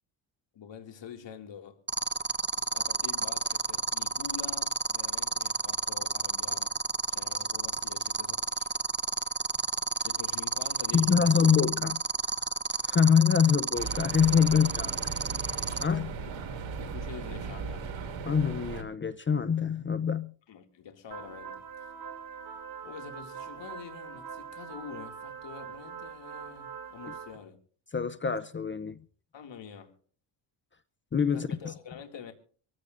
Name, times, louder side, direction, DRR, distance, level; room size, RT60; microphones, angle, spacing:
voice 1, 0.5-1.8 2.6-6.8 7.1-8.7 10.0-11.4 16.2-16.3 16.8-18.0 20.5-21.9 22.8-27.6 29.3-30.0 31.3-32.3, left 7 dB, 60° left, 2.4 m, -46 dB
sound 1, 1.9-15.8, right 5 dB, 20° right, 0.9 m, -29 dB
voice 2, 10.9-12.0 12.8-15.1 15.8-16.2 18.3-20.3 27.9-29.0 31.1-31.7, left 7 dB, 25° left, 0.5 m, -25 dB
sound 2, 13.7-18.8, right 5 dB, 65° right, 2.8 m, -37 dB
sound 3, 21.1-27.4, right 6 dB, 50° right, 6.9 m, -43 dB
24.5 x 15.0 x 2.5 m
cardioid pair, 95°, 50 cm